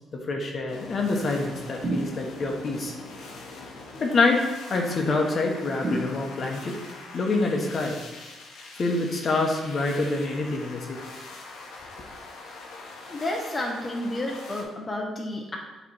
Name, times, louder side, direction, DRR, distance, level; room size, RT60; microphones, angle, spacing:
voice 1, 0.1-2.9 4.0-4.4 4.7-6.8 7.1-8.0 8.8-11.0, left 3 dB, 45° left, 2 dB, 1.1 m, -26 dB
sound 1, 0.7-14.6, left 3 dB, 85° left, 1.1 m, -43 dB
sound 2, 1.8-2.7 5.8-6.8, right 1 dB, 35° right, 0.8 m, -31 dB
voice 2, 13.1-15.6, left 1 dB, 25° left, -1 dB, 0.9 m, -31 dB
7.6 x 3.3 x 4.2 m, 1.2 s
cardioid pair, 90°, 0 cm